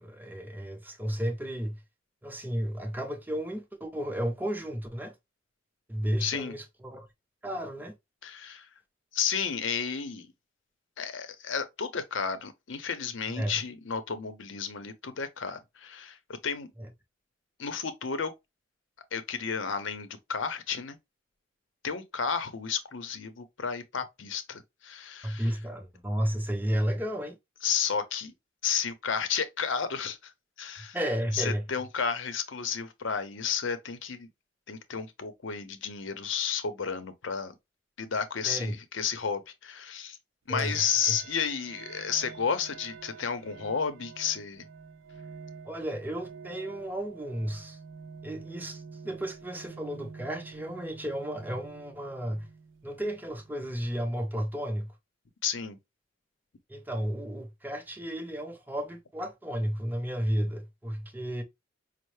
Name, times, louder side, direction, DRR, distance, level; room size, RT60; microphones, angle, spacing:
voice 1, 0.0-1.8 2.2-5.1 5.9-7.1 7.4-7.9 13.3-13.5 16.8-16.9 25.2-27.4 30.9-31.6 38.4-38.7 40.5-40.8 41.1-41.2 45.7-47.8 48.2-52.5 52.8-54.9 56.7-61.4, equal, 10° right, 0.6 m, -33 dB
voice 2, 6.2-6.5 8.2-8.7 9.1-10.3 11.0-16.2 16.4-16.7 17.6-18.3 19.1-21.0 21.8-25.5 27.6-28.3 28.6-30.3 30.6-31.0 31.3-34.3 34.7-37.5 38.0-40.2 40.5-44.7 55.4-55.8, left 6 dB, 70° left, 0.7 m, -32 dB
Project Orig, 40.6-54.1, right 5 dB, 85° right, 0.5 m, -48 dB
5.3 x 2.0 x 3.1 m
head